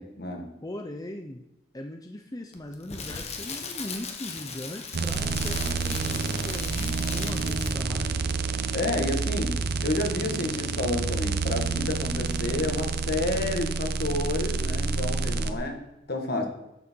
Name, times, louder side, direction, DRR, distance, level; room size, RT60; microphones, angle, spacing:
voice 1, 0.0-0.5 8.7-15.8 16.1-16.5, left 2 dB, 60° left, 3 dB, 1.8 m, -30 dB
voice 2, 0.6-1.4 1.7-8.4 9.2-9.4, left 1 dB, 20° left, 4 dB, 0.7 m, -39 dB
Crackle, 2.5-8.0 8.3-8.5, left 5 dB, 35° left, 1.3 m, -38 dB
sound 1, 4.9-15.5, right 4 dB, 60° right, 0.7 m, -29 dB
12.5 x 6.8 x 4.6 m, 0.91 s
head